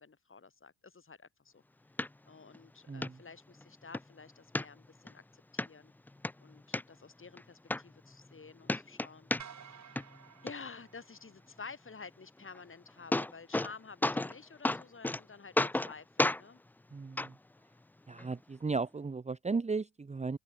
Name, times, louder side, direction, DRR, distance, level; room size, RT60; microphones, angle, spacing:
voice 1, 0.0-1.6 2.3-5.9 6.4-10.1 10.4-16.6, left 4 dB, 30° left, 4.7 m, -51 dB
sound 1, 2.0-2.1 2.5-2.6 3.0-3.1 3.6-4.0 4.5-5.1 5.6-5.7 6.1-6.8 7.4-7.5 7.7-8.4 8.6-9.7 10.0-10.5 12.5-12.6 12.9-13.7 14.0-14.4 14.6-15.2 15.6-15.9 16.2-16.4 17.2-17.3 18.2-18.3, left 2 dB, 5° left, 0.4 m, -31 dB
voice 2, 2.9-3.2 16.9-17.4 18.1-20.4, right 4 dB, 15° right, 1.0 m, -35 dB
sound 2, 9.4-11.8, right 7 dB, 40° right, 2.4 m, -53 dB
open air
hypercardioid pair, 55°, 41 cm